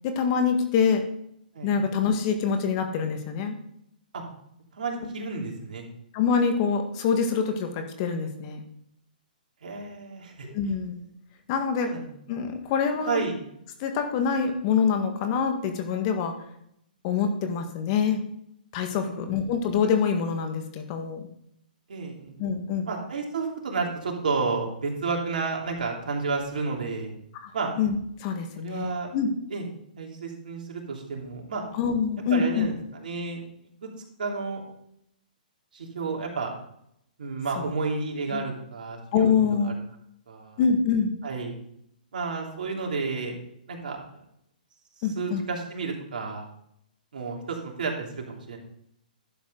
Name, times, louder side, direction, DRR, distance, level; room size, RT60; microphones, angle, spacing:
voice 1, 0.0-1.0 1.6-3.6 6.1-8.6 10.5-10.9 11.5-11.9 12.3-13.2 13.8-16.3 17.0-18.2 18.7-21.3 22.4-22.9 27.4-29.3 31.7-32.7 37.5-37.7 38.3-38.4 39.1-39.7 40.6-41.1 45.0-45.4, left 6 dB, 40° left, 6 dB, 1.6 m, -25 dB
voice 2, 4.8-5.8 9.6-10.5 11.7-12.1 13.1-13.4 19.0-19.4 21.9-22.4 22.9-27.1 27.5-27.7 28.6-29.1 29.5-29.6 30.0-31.6 32.3-32.7 33.0-33.4 33.8-33.9 34.2-34.6 35.7-36.5 37.2-39.7 40.3-40.6 41.2-41.5 42.1-43.3 43.7-44.2 45.1-46.4 47.1-48.6, right 4 dB, 70° right, 0 dB, 2.9 m, -31 dB
11.5 x 7.2 x 3.9 m, 0.74 s
hypercardioid pair, 140°, 5 cm